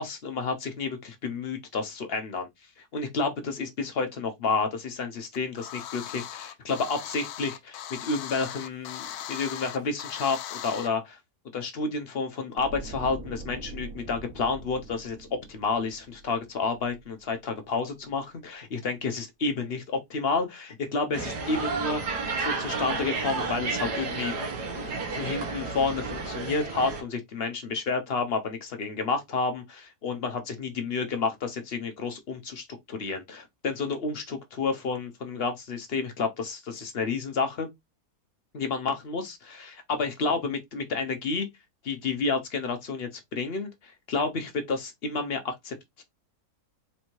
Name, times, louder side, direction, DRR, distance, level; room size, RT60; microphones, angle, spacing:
voice 1, 0.0-2.5 2.9-11.2 11.5-22.0 22.4-24.3 24.7-37.7 38.5-41.5 41.8-46.0, left 4 dB, 50° left, 0.8 m, -30 dB
sound 1, 5.3-10.9, left 11 dB, 75° left, 1.0 m, -39 dB
sound 2, 12.6-17.7 17.9-18.2, right 2 dB, 65° right, 1.3 m, -43 dB
sound 3, 21.1-27.0, right 4 dB, 85° right, 1.7 m, -31 dB
4.3 x 2.7 x 3.0 m
omnidirectional pair, 1.7 m